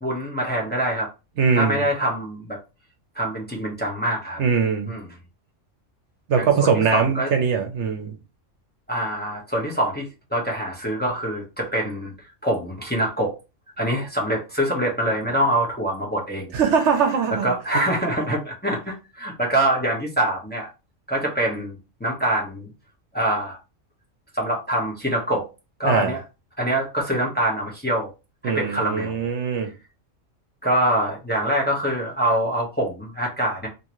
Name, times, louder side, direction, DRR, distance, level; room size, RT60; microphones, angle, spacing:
voice 1, 0.0-1.1 1.5-2.6 3.1-4.4 4.9-5.0 6.4-7.3 8.9-12.1 12.4-13.3 13.8-16.5 17.4-20.7 21.1-22.7 23.1-23.6 24.3-25.5 25.8-26.2 26.6-28.1 28.4-29.3 30.6-33.7, right 1 dB, 10° left, 1.0 m, -24 dB
voice 2, 1.4-1.8 4.4-4.9 6.3-8.2 16.5-17.5 25.8-26.1 28.4-29.7, right 6 dB, 65° right, 1.0 m, -21 dB
3.7 x 2.8 x 3.0 m
omnidirectional pair, 1.3 m